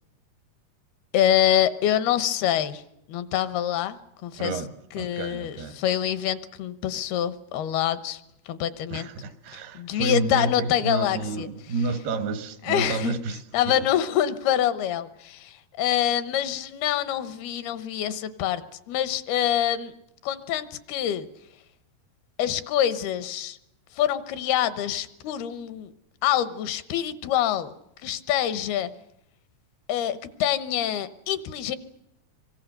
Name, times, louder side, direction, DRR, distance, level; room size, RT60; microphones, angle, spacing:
voice 1, 1.1-2.8 3.1-4.0 4.2-4.6 4.9-8.2 8.5-9.1 9.7-11.5 12.6-13.1 13.5-18.6 18.9-19.9 20.2-21.3 22.4-23.6 23.9-25.9 26.2-27.7 28.0-28.9 29.9-31.8, left 11 dB, 80° left, 3.0 m, -25 dB
voice 2, 4.4-5.8 8.9-13.9, right 3 dB, 80° right, 3.7 m, -30 dB
27.5 x 24.0 x 6.6 m
omnidirectional pair, 4.5 m